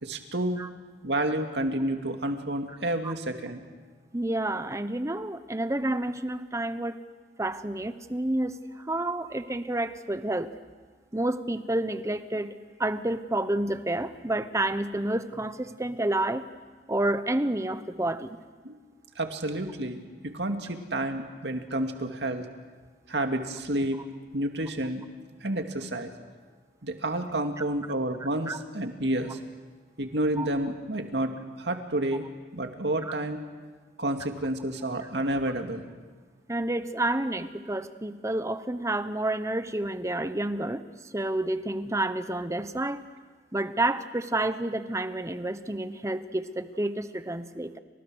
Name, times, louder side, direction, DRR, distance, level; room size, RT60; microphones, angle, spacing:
voice 1, 0.0-0.6 1.0-3.6 18.6-18.7 19.2-20.0 20.2-22.4 23.1-24.0 24.3-25.0 25.4-26.1 26.8-29.4 30.0-31.3 31.6-32.2 32.5-33.4 34.0-35.8, right 1 dB, 75° right, 5 dB, 2.4 m, -30 dB
voice 2, 4.1-7.0 7.4-10.5 11.1-12.5 12.8-16.5 16.9-18.4 28.5-28.6 30.4-30.5 33.0-33.1 35.0-35.1 36.5-40.8 41.1-43.0 43.5-47.8, right 1 dB, 15° right, 11 dB, 1.0 m, -29 dB
30.0 x 26.0 x 6.4 m, 1.4 s
head